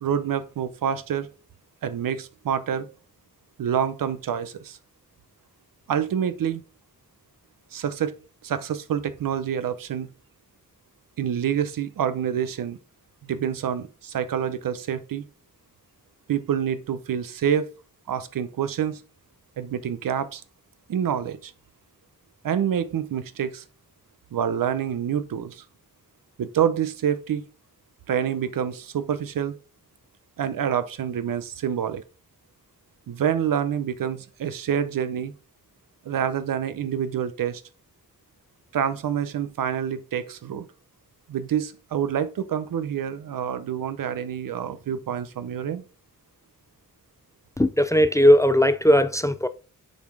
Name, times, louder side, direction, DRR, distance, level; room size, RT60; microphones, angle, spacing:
voice 1, 0.0-1.3 1.8-2.9 3.6-4.8 5.9-6.6 7.7-8.1 8.4-10.1 11.2-12.8 13.2-15.2 16.3-17.7 18.1-19.0 19.6-20.4 20.9-21.5 22.4-23.6 24.3-25.6 26.4-27.4 28.1-29.5 30.4-32.0 33.1-35.3 36.0-37.6 38.7-40.6 41.3-45.8, right 9 dB, 80° right, 0.8 m, -27 dB
voice 2, 47.6-49.5, equal, 10° left, 0.4 m, -18 dB
7.1 x 4.1 x 4.8 m
wide cardioid pair, 115°, 33 cm